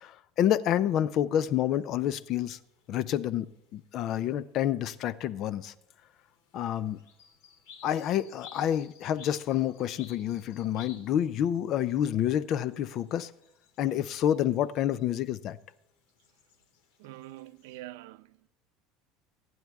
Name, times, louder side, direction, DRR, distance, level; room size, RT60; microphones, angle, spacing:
voice 1, 0.0-2.6 2.9-5.7 6.5-7.0 7.8-13.3 13.8-15.6, left 11 dB, 40° left, 0.5 m, -28 dB
sound 1, 1.7-17.8, left 6 dB, 80° left, 2.7 m, -58 dB
voice 2, 17.0-18.5, right 15 dB, 90° right, 0.5 m, -45 dB
22.5 x 9.4 x 3.5 m
cardioid pair, 155°, 0 cm